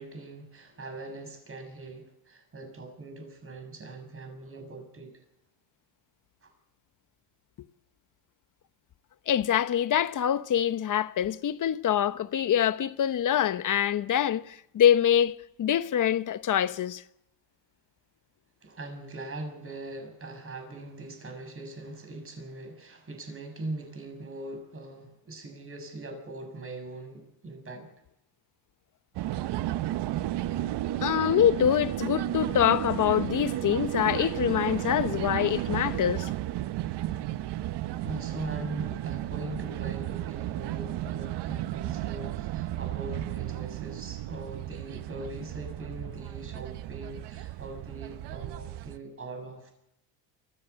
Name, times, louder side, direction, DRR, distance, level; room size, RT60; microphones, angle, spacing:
voice 1, 0.0-5.2 6.4-6.5 18.6-27.9 38.0-49.7, right 2 dB, 25° right, 7.0 m, -41 dB
voice 2, 9.3-17.0 31.0-36.3, left 10 dB, 40° left, 1.0 m, -25 dB
sound 1, 29.1-49.0, right 14 dB, 55° right, 1.0 m, -33 dB
24.0 x 15.0 x 8.2 m
supercardioid pair, 105°, 50 cm